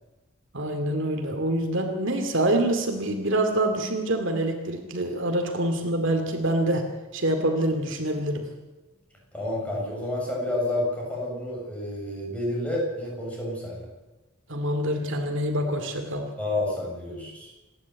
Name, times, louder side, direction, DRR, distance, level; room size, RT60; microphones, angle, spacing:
voice 1, 0.5-6.9 7.1-8.5 14.5-16.3, right 1 dB, 60° right, 4 dB, 2.5 m, -26 dB
voice 2, 9.3-13.9 16.4-17.5, left 1 dB, 5° left, -3 dB, 7.4 m, -29 dB
27.5 x 11.5 x 8.2 m, 1.1 s
head